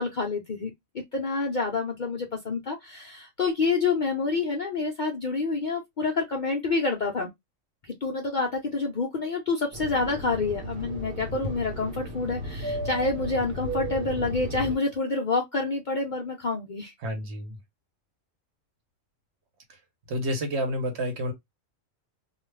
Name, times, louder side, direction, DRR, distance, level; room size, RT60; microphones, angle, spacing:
voice 1, 0.0-7.3 7.8-16.9, left 3 dB, 55° left, 0.5 m, -28 dB
Fixed-wing aircraft airplane, 9.7-14.8, equal, 85° right, 1.1 m, -34 dB
voice 2, 17.0-17.6 20.1-21.3, equal, 60° right, 1.1 m, -29 dB
2.4 x 2.4 x 3.2 m
omnidirectional pair, 1.4 m